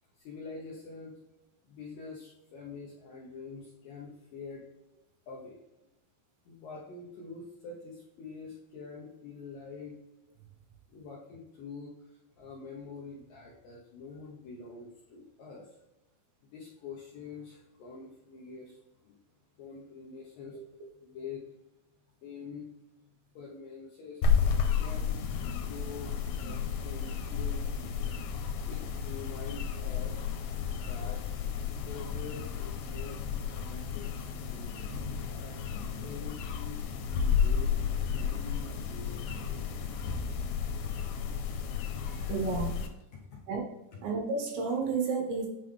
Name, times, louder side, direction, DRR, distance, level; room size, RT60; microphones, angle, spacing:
voice 1, 0.2-1.2 1.6-4.6 5.3-5.6 6.5-10.0 10.9-15.8 16.5-19.2 19.6-20.6 21.0-21.4 22.2-22.6 23.3-24.2 24.8-28.2 28.6-31.3 31.8-34.8 35.1-35.6 36.0-37.7 38.1-39.9 41.9-42.3 43.1-43.4 43.9-44.0, left 4 dB, 70° left, -4 dB, 2.1 m, -46 dB
voice 2, 20.5-20.9 42.3-42.7 43.5-43.6 44.0-45.5, right 4 dB, 75° right, -2 dB, 4.1 m, -31 dB
sound 1, 24.2-42.9, left 6 dB, 90° left, 3.2 m, -32 dB
8.9 x 3.9 x 3.3 m, 0.94 s
omnidirectional pair, 5.3 m